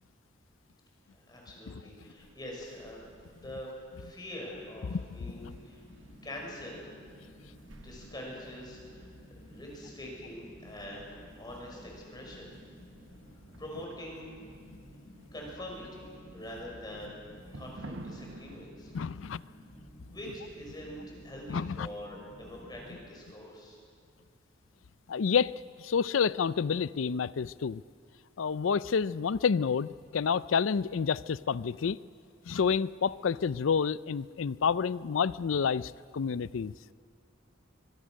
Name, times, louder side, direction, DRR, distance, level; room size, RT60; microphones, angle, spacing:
voice 1, 1.1-3.0 3.4-3.7 4.0-5.8 6.2-6.9 7.7-9.1 9.5-12.5 13.6-14.3 15.3-17.2 17.5-18.9 19.3-19.4 20.1-23.8, left 1 dB, 20° left, -1 dB, 6.1 m, -44 dB
sound 1, 2.2-18.7, right 2 dB, 70° right, 1.1 m, -54 dB
sound 2, 4.5-23.1, equal, 45° left, 3.5 m, -53 dB
voice 2, 18.9-19.4 21.5-21.9 25.1-25.5 25.8-27.8 28.4-32.0 32.5-36.7, left 6 dB, 80° left, 18 dB, 0.5 m, -29 dB
24.0 x 22.5 x 6.4 m, 2.2 s
head